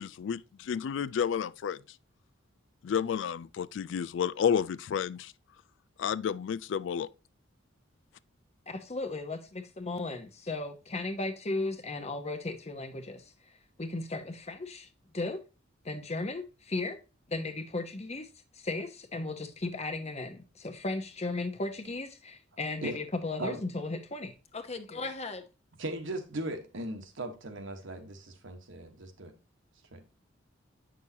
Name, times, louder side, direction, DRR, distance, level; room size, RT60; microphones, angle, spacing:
voice 1, 0.0-1.8 2.8-5.3 6.0-7.1, left 7 dB, 65° left, 0.3 m, -31 dB
voice 2, 8.7-13.2 13.8-14.9 15.1-15.4 15.8-17.0 17.3-18.3 18.6-25.4, left 2 dB, 35° left, 0.9 m, -36 dB
voice 3, 25.8-29.3 29.9-30.0, right 1 dB, 65° right, 1.2 m, -38 dB
8.3 x 6.2 x 2.8 m
head